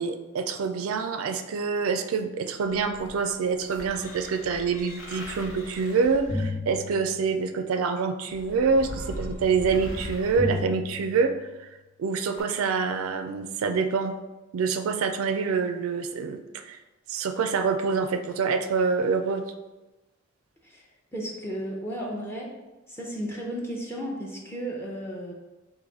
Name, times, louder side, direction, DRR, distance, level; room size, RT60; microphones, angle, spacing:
voice 1, 0.0-11.3 11.6-11.7 12.0-14.1 14.5-16.8 17.1-19.4, right 5 dB, 85° right, 7 dB, 0.4 m, -26 dB
sound 1, 2.7-7.6 8.3-11.6 12.4-12.5, left 2 dB, 65° left, 1.0 m, -36 dB
voice 2, 21.1-22.5 22.9-25.3, equal, 10° left, -2 dB, 0.6 m, -34 dB
3.9 x 2.6 x 4.7 m, 1.1 s
head